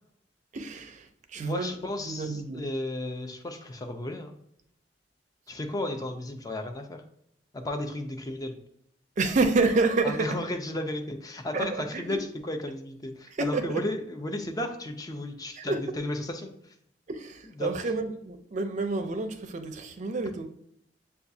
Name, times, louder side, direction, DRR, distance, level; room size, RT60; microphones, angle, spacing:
voice 1, 0.5-2.7 9.2-10.5 11.5-12.2 13.3-13.9 15.5-15.9 17.1-20.5, right 3 dB, 45° right, 0.5 m, -29 dB
voice 2, 1.3-4.4 5.5-7.0 7.5-8.6 10.0-12.2 12.5-16.7 17.6-17.7, left 1 dB, 20° left, 0.5 m, -34 dB
6.9 x 2.3 x 2.7 m
head